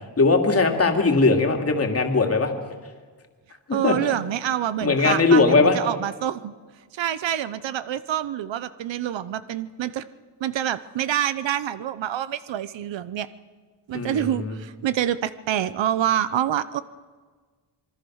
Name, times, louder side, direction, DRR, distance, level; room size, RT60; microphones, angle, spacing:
voice 1, 0.2-2.5 3.7-3.9 4.8-5.8 13.9-14.6, left 3 dB, 35° left, 4 dB, 2.6 m, -19 dB
voice 2, 3.7-6.5 6.9-10.0 10.4-13.3 13.9-16.8, right 11 dB, 80° right, 14 dB, 0.9 m, -26 dB
26.0 x 23.5 x 6.4 m, 1.5 s
wide cardioid pair, 140°, 44 cm